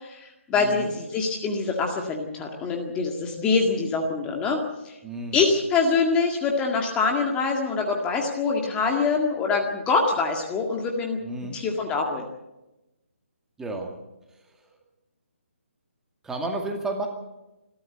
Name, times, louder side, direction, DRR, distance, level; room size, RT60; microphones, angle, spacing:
voice 1, 0.0-5.0 5.3-11.2 11.5-12.3, left 4 dB, 15° left, 1 dB, 1.9 m, -25 dB
voice 2, 0.6-0.9 5.0-5.4 11.2-11.6 13.6-13.9 14.4-14.7 16.2-17.1, right 2 dB, 5° right, 2 dB, 2.2 m, -32 dB
27.5 x 12.5 x 7.9 m, 1.0 s
hypercardioid pair, 155°, 7 cm